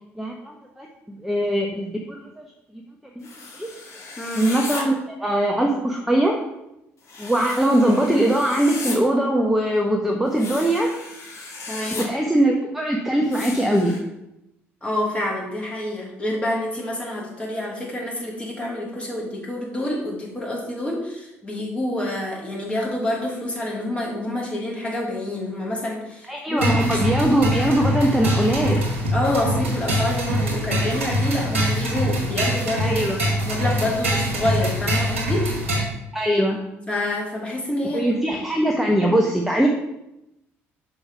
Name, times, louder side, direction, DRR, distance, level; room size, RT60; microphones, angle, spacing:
voice 1, 0.2-2.3 3.5-3.7 4.3-6.4 7.2-10.9 12.0-13.9 26.3-28.8 32.8-33.2 36.1-36.7 37.9-39.7, right 1 dB, 5° right, 0 dB, 1.0 m, -21 dB
sound 1, 3.2-4.8 7.1-9.0 10.3-12.0 13.3-14.0, left 3 dB, 45° left, 1.8 m, -35 dB
voice 2, 4.2-4.5 11.7-12.1 14.8-27.0 29.1-33.1 33.4-35.5 36.9-38.4, left 1 dB, 15° left, -3 dB, 2.9 m, -27 dB
sound 2, 26.6-35.8, equal, 80° right, 1.6 m, -23 dB
5.6 x 5.4 x 5.7 m, 0.88 s
figure-of-eight pair, 50°, 7 cm